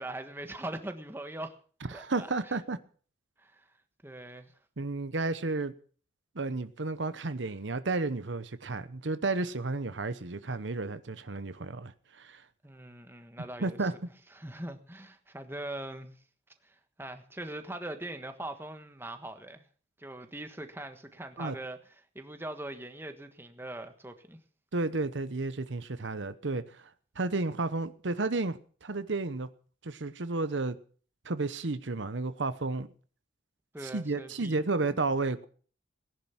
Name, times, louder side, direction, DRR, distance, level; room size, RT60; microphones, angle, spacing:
voice 1, 0.0-1.5 1.9-2.6 3.4-3.7 4.0-4.5 12.6-13.9 14.3-16.1 16.6-19.6 20.0-24.4 33.7-34.6 34.9-35.0, right 1 dB, 10° right, 1.4 m, -41 dB
voice 2, 1.9-2.8 4.8-5.7 6.3-12.4 13.6-13.9 21.4-21.6 24.7-26.9 27.2-29.5 29.8-30.8 31.2-32.9 33.8-35.4, right 3 dB, 70° right, 0.9 m, -32 dB
18.5 x 10.5 x 5.9 m
head